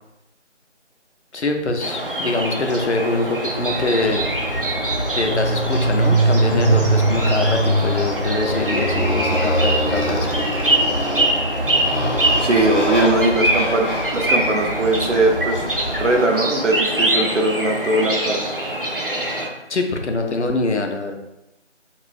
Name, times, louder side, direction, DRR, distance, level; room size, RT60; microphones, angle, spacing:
voice 1, 1.3-4.2 5.1-10.3 19.7-21.1, left 3 dB, 70° left, 4 dB, 0.6 m, -24 dB
sound 1, 1.8-19.5, right 1 dB, 50° right, 0.6 m, -24 dB
Motorcycle, 3.5-16.2, right 1 dB, 90° left, 1.1 m, -23 dB
voice 2, 12.4-15.6 16.0-18.4, right 2 dB, 85° right, 1 dB, 0.8 m, -20 dB
2.5 x 2.5 x 3.3 m, 0.89 s
figure-of-eight pair, 170°, 36 cm